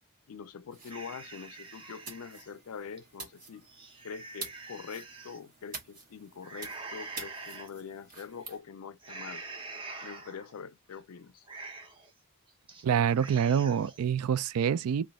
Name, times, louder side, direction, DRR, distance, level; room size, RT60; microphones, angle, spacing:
voice 1, 0.3-3.7 4.0-9.5 10.0-11.5, left 6 dB, 80° left, 0.4 m, -44 dB
sound 1, 0.7-8.6, right 4 dB, 40° right, 1.3 m, -48 dB
sound 2, 0.9-2.5 3.0-3.1 3.6-5.4 6.4-7.7 8.2-8.5 9.0-10.5 10.9-11.0 11.4-12.1 12.5-12.8 13.1-14.0, right 3 dB, 25° right, 0.8 m, -45 dB
voice 2, 12.8-15.1, right 8 dB, 85° right, 0.3 m, -26 dB
3.1 x 2.5 x 3.9 m
head